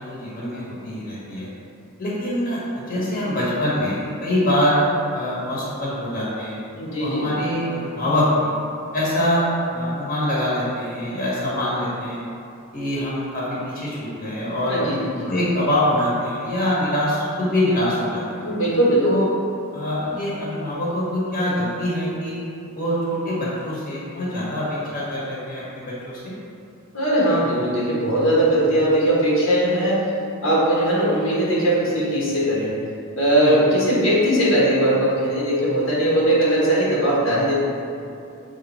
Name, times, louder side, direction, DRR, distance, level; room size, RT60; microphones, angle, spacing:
voice 1, 0.0-1.5 2.0-4.8 5.1-6.6 7.0-8.5 8.9-12.2 12.7-14.8 15.3-18.4 19.0-19.2 19.7-22.4 22.7-26.3 33.4-33.5, left 1 dB, 40° left, -7 dB, 1.4 m, -24 dB
voice 2, 6.7-7.3 14.7-15.3 18.4-19.2 26.9-30.1 30.4-32.7 33.2-37.6, right 1 dB, 65° left, -6 dB, 1.4 m, -19 dB
6.6 x 3.6 x 4.3 m, 2.5 s
head